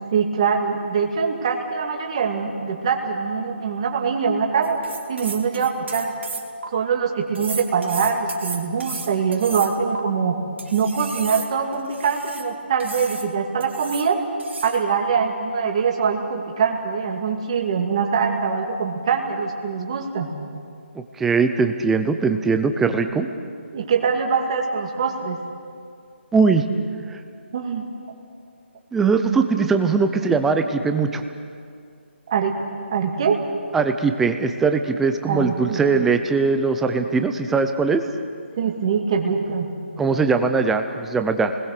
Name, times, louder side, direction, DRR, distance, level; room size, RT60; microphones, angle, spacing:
voice 1, 0.1-4.8 5.1-6.1 6.7-10.4 10.7-14.2 14.6-20.3 23.1-23.3 23.7-25.4 27.5-27.9 32.3-32.5 32.9-33.4 35.3-36.1 38.6-39.7, right 6 dB, 30° right, 2 dB, 2.4 m, -23 dB
sound 1, 4.6-6.7 7.3-10.0 10.6-12.5 12.8-13.3 13.6-14.1 14.4-14.8, right 4 dB, 75° right, 2.9 m, -34 dB
voice 2, 21.2-23.3 26.3-26.6 28.9-31.2 33.7-38.0 40.0-41.5, right 4 dB, 5° right, 7 dB, 0.6 m, -20 dB
29.5 x 21.0 x 6.7 m, 2.3 s
hypercardioid pair, 175°, 6 cm